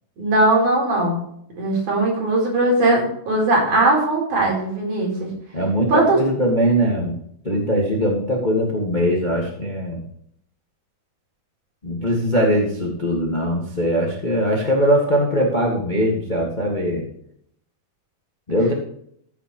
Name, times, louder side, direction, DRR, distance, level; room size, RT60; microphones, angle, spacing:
voice 1, 0.2-1.2 1.6-5.3 5.9-6.2, right 2 dB, 50° right, -2 dB, 5.6 m, -19 dB
voice 2, 5.5-7.1 7.4-10.0 11.8-17.1 18.5-18.7, equal, 35° left, -1 dB, 0.7 m, -21 dB
14.5 x 8.4 x 3.2 m, 0.68 s
omnidirectional pair, 4.8 m